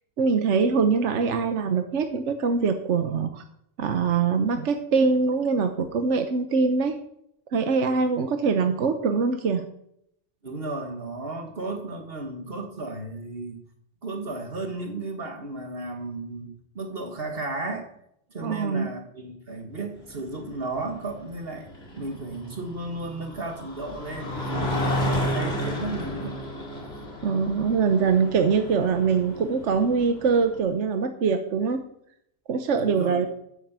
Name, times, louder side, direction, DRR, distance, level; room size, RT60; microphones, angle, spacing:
voice 1, 0.2-3.4 3.8-7.0 7.5-9.7 18.4-18.9 27.2-31.8 32.5-33.3, right 5 dB, 75° right, 7 dB, 1.3 m, -23 dB
voice 2, 10.4-13.6 14.0-17.9 18.3-21.7 22.0-26.3 32.7-33.3, right 2 dB, 55° right, 4 dB, 1.8 m, -34 dB
sound 1, 20.0-30.6, equal, 60° left, 2.8 m, -32 dB
9.5 x 9.3 x 8.1 m, 0.74 s
omnidirectional pair, 1.2 m